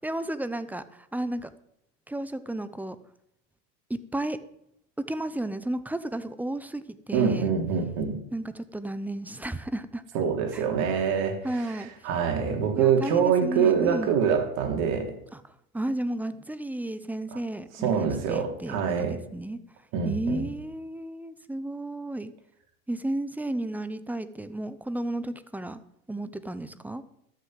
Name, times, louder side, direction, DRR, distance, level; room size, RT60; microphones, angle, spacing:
voice 1, 0.0-1.5 2.1-3.0 3.9-4.4 5.0-7.5 8.3-10.0 10.5-10.7 10.9-11.1 11.4-11.9 12.8-14.1 15.3-15.4 15.7-19.6 20.0-22.3 22.9-25.8 26.1-27.0, right 1 dB, 5° right, 13 dB, 0.6 m, -33 dB
voice 2, 7.1-8.2 10.1-11.7 12.0-15.2 17.8-19.2 19.9-20.5, right 7 dB, 55° right, 4 dB, 3.1 m, -25 dB
13.0 x 6.6 x 7.6 m, 0.76 s
hypercardioid pair, 110°, 43 cm